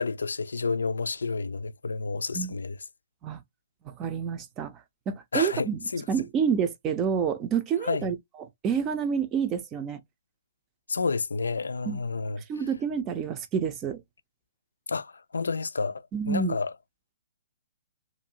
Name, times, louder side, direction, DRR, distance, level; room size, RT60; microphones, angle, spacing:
voice 1, 0.0-2.8 5.3-6.1 7.8-8.1 10.9-12.4 14.9-16.7, left 4 dB, 85° left, 0.3 m, -30 dB
voice 2, 3.8-4.7 5.1-5.8 6.1-8.2 8.6-10.0 11.9-12.0 12.5-14.0 16.1-16.5, right 7 dB, 25° right, 0.5 m, -28 dB
2.6 x 2.5 x 2.8 m
hypercardioid pair, 135°, 0 cm